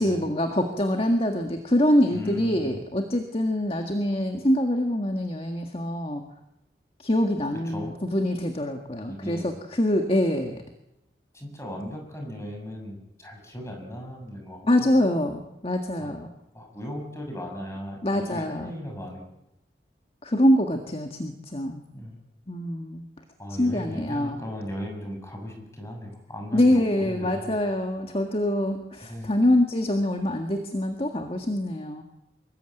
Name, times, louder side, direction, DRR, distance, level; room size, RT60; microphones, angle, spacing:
voice 1, 0.0-6.2 7.0-10.6 14.6-16.3 18.0-18.7 20.2-21.8 22.5-23.1 23.6-24.4 26.5-32.0, left 1 dB, 30° left, 5 dB, 1.8 m, -24 dB
voice 2, 2.1-2.8 7.6-7.9 9.1-9.5 11.3-14.9 16.0-16.1 16.5-19.3 21.9-22.2 23.4-27.6 29.1-29.3, equal, 15° left, 2 dB, 6.9 m, -37 dB
25.5 x 22.0 x 9.2 m, 0.89 s
head